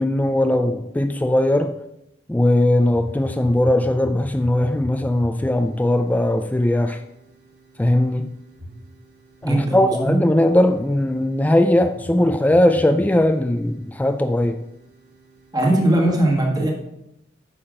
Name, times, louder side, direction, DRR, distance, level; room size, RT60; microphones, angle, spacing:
voice 1, 0.0-1.8 2.3-7.0 7.8-8.3 9.4-14.6, left 1 dB, 10° left, 0.3 m, -19 dB
sound 1, 2.4-15.5, equal, 55° right, 2.5 m, -42 dB
voice 2, 9.4-10.2 15.5-16.7, right 1 dB, 20° right, 1.5 m, -19 dB
8.8 x 5.7 x 5.0 m
head